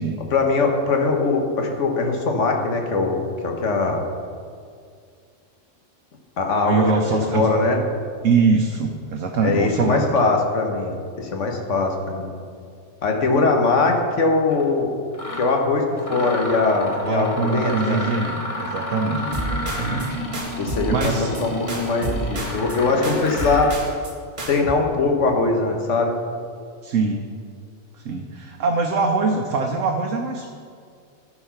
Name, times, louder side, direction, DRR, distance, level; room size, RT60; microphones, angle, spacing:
voice 1, 0.3-4.0 6.4-6.8 7.3-7.8 9.4-12.3 13.0-14.9 15.4-15.8 16.1-18.0 19.4-19.5 20.6-21.1 21.4-23.7 24.5-26.2, left 3 dB, 70° left, 2 dB, 1.5 m, -21 dB
voice 2, 6.6-7.5 8.2-10.1 17.0-20.2 20.5-21.3 26.8-27.3 28.0-30.5, right 4 dB, 80° right, 2 dB, 1.1 m, -23 dB
Mechanisms, 14.5-14.6 15.1-15.5 16.0-23.8, left 1 dB, 30° left, 1.2 m, -31 dB
sound 1, 19.3-20.1 20.3-21.4 21.7-22.8 23.0-24.1 24.4-24.7, right 1 dB, 40° right, 1.6 m, -29 dB
13.0 x 4.8 x 5.7 m, 2.2 s
omnidirectional pair, 1.3 m